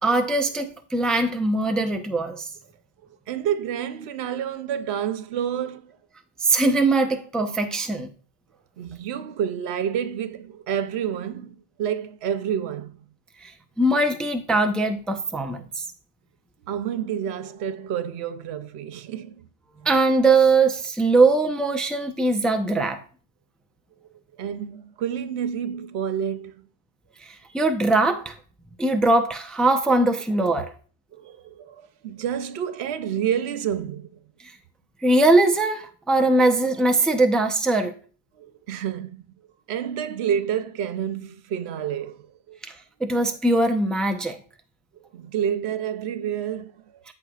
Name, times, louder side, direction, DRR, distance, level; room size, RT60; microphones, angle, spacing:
voice 1, 0.0-2.5 6.4-8.1 13.4-13.5 13.8-15.8 19.8-23.0 27.2-28.4 28.8-30.7 34.4-34.5 35.0-37.9 42.6-42.7 43.0-44.4, right 2 dB, ahead, 0.5 m, -21 dB
voice 2, 3.3-6.0 8.8-13.1 16.7-19.5 24.4-26.6 31.1-34.2 38.4-39.3 39.7-42.6 45.0-47.0, right 9 dB, 85° right, 0.9 m, -29 dB
13.5 x 4.8 x 2.4 m
omnidirectional pair, 1.1 m